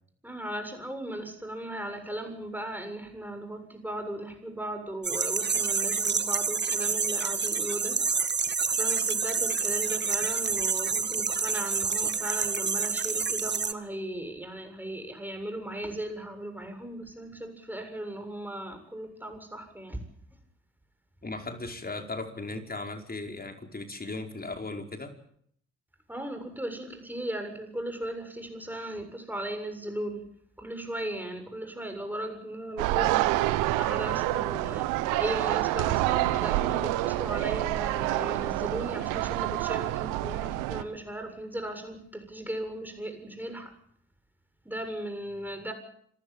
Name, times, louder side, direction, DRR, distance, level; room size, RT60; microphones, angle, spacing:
voice 1, 0.2-8.1 8.7-20.0 26.1-30.3 30.6-43.7 44.7-45.7, right 1 dB, 5° right, 6 dB, 7.3 m, -37 dB
sound 1, 5.0-13.7, right 5 dB, 35° right, 1.8 m, -28 dB
voice 2, 21.2-25.2, left 3 dB, 30° left, 5 dB, 5.0 m, -37 dB
sound 2, 32.8-40.8, right 17 dB, 75° right, 1.3 m, -27 dB
26.5 x 15.5 x 8.9 m, 0.66 s
hypercardioid pair, 40°, 32 cm